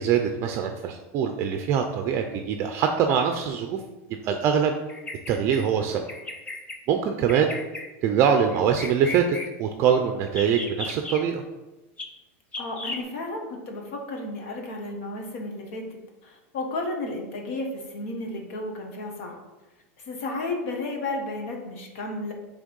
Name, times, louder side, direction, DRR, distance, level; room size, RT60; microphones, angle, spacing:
voice 1, 0.0-3.8 4.2-4.7 5.3-6.0 6.9-7.5 8.0-11.4, right 7 dB, 35° right, 5 dB, 0.5 m, -23 dB
Bird vocalization bird call bird song, 4.9-5.6 6.1-6.8 7.3-7.9 8.5-9.5 10.3-11.2 12.0-12.1 12.5-13.0, left 2 dB, 15° left, 0.7 m, -35 dB
voice 2, 12.6-19.4 20.1-22.3, left 2 dB, 65° left, 2 dB, 1.5 m, -33 dB
6.1 x 3.4 x 5.3 m, 1.1 s
supercardioid pair, 155°, 8 cm